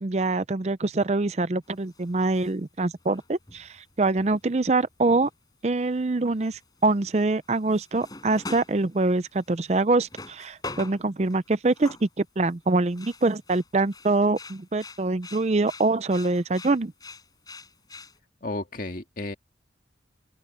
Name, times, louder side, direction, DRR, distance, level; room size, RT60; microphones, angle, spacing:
voice 1, 0.0-5.3 5.6-16.9, right 3 dB, 35° right, 0.5 m, -24 dB
sound 1, 1.6-2.5 2.9-5.3 5.7-6.0 6.3-12.1 12.5-18.2, left 3 dB, 20° left, 4.9 m, -45 dB
voice 2, 18.4-19.3, left 2 dB, 50° left, 1.9 m, -33 dB
head